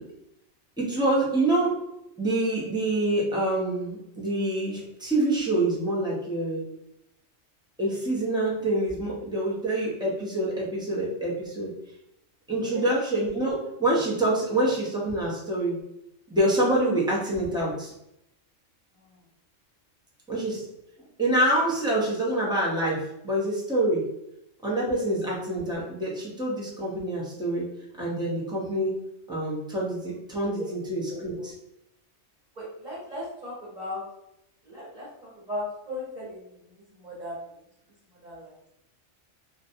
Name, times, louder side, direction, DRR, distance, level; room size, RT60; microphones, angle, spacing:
voice 1, 0.8-1.7 2.2-6.6 7.8-11.7 12.5-15.8 16.3-17.9 20.3-20.7 21.2-24.0 24.6-27.7 28.0-28.9 29.3-31.5, right 1 dB, 5° right, -6 dB, 0.3 m, -26 dB
voice 2, 12.6-12.9 15.2-15.3 18.9-19.2 30.4-30.7 31.0-31.5 32.5-34.0 34.6-37.4 38.2-38.5, left 1 dB, 40° right, -10 dB, 1.0 m, -38 dB
2.6 x 2.1 x 2.6 m, 0.82 s
omnidirectional pair, 1.3 m